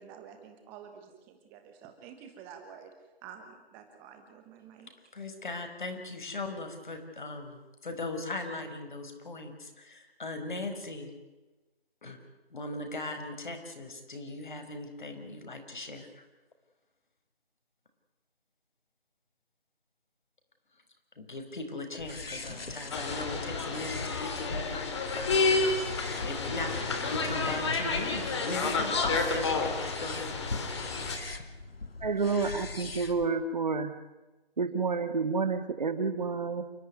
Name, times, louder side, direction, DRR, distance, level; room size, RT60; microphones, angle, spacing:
voice 1, 0.0-2.9 3.2-4.9, right 7 dB, 5° right, 5 dB, 1.3 m, -49 dB
voice 2, 5.1-11.1 12.0-12.2 12.5-16.2 21.2-25.4 26.0-30.4, left 2 dB, 50° left, 6 dB, 5.4 m, -39 dB
sound 1, 22.0-33.3, left 3 dB, 70° left, 2.6 m, -41 dB
sound 2, 22.9-31.2, left 3 dB, 30° left, 3.3 m, -30 dB
voice 3, 32.0-34.0 34.6-36.6, right 4 dB, 45° right, 10 dB, 2.2 m, -29 dB
29.5 x 14.5 x 9.6 m, 1.1 s
figure-of-eight pair, 165°, 30 cm